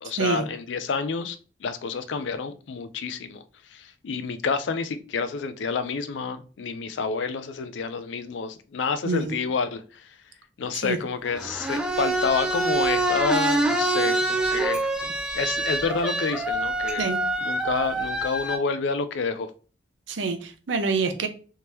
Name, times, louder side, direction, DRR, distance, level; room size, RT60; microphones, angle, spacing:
voice 1, 0.0-3.4 3.7-10.1 10.6-14.8 15.3-17.1 17.4-19.5, left 5 dB, 80° left, 0.4 m, -29 dB
voice 2, 9.0-9.4 10.7-11.0 17.0-17.2 20.1-21.3, right 4 dB, 85° right, 0.6 m, -26 dB
sound 1, 11.3-18.6, right 2 dB, 5° right, 0.4 m, -26 dB
3.5 x 2.8 x 3.0 m
head